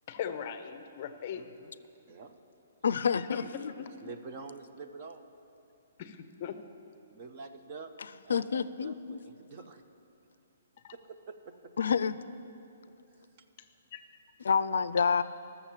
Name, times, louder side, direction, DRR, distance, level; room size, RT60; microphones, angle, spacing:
voice 1, 0.1-1.5 2.9-3.9 6.0-6.6 10.8-10.9 13.9-14.0, left 8 dB, 30° left, 9 dB, 0.6 m, -39 dB
voice 2, 1.3-1.7 2.0-2.4 3.4-3.5 3.8-5.3 7.1-7.9 8.3-9.8 10.9-11.7, right 4 dB, 25° right, 7 dB, 0.6 m, -47 dB
voice 3, 2.8-3.7 8.3-9.2 11.8-12.2 14.4-15.2, left 6 dB, 75° left, 14 dB, 0.4 m, -28 dB
14.0 x 6.8 x 7.4 m, 2.7 s
hypercardioid pair, 175°, 0 cm